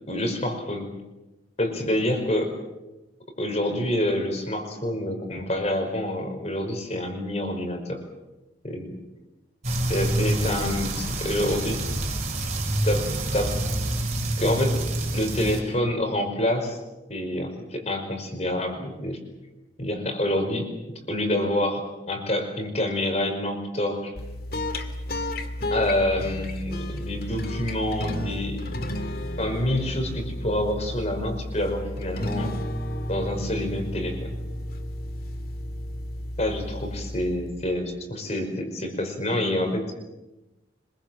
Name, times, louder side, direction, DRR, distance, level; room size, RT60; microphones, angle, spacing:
voice 1, 0.1-0.9 1.6-2.5 3.4-8.0 8.6-9.0 9.9-11.8 12.8-13.6 14.4-14.8 15.1-16.8 17.1-19.2 19.8-20.7 21.1-24.1 25.7-28.6 29.4-32.6 33.1-34.3 36.4-39.9, left 1 dB, 35° left, 4 dB, 5.3 m, -27 dB
sound 1, 9.6-15.6, right 1 dB, 35° right, 5.0 m, -27 dB
sound 2, 24.2-37.7, left 1 dB, 50° left, 2.3 m, -32 dB
26.0 x 23.0 x 7.6 m, 1.0 s
head